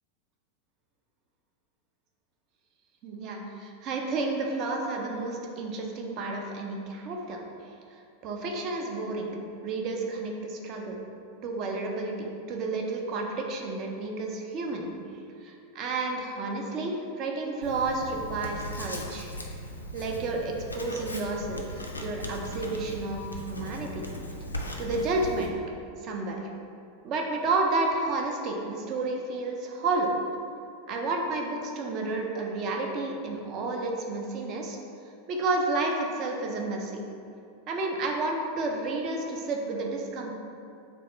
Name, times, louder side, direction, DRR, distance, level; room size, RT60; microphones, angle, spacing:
voice 1, 3.0-7.4 8.2-9.3 9.6-11.0 11.4-14.9 15.4-19.3 19.9-21.6 22.0-24.1 24.8-25.5 26.0-26.4 27.0-30.1 30.9-34.8 35.3-37.0 37.7-40.3, right 3 dB, 40° right, 1 dB, 0.5 m, -31 dB
Writing, 17.6-25.5, left 1 dB, 85° left, 0.3 m, -38 dB
3.4 x 2.3 x 3.8 m, 2.6 s
figure-of-eight pair, 90°, 0 cm